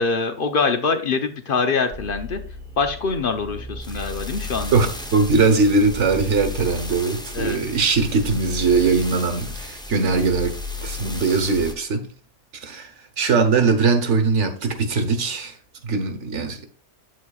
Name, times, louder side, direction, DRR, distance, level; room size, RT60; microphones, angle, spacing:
voice 1, 0.0-2.4 2.8-4.8 7.3-7.6, left 4 dB, 50° left, 0.9 m, -24 dB
sound 1, 1.9-11.7, left 3 dB, 5° left, 0.6 m, -34 dB
voice 2, 4.7-12.1 12.6-15.6 15.8-16.7, right 4 dB, 75° right, 1.4 m, -21 dB
8.2 x 7.9 x 2.4 m
omnidirectional pair, 1.2 m